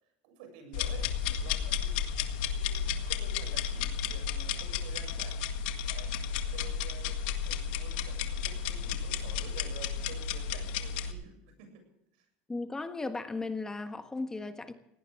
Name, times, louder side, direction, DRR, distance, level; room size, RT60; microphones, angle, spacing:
voice 1, 0.2-2.1 2.5-5.5 5.9-11.8 12.1-12.3, right 6 dB, 85° right, 7.1 m, -51 dB
sound 1, 0.7-11.1, left 7 dB, 85° left, 1.8 m, -33 dB
voice 2, 12.5-14.7, left 3 dB, 15° left, 1.4 m, -36 dB
20.0 x 18.0 x 3.6 m
supercardioid pair, 125°, 5 cm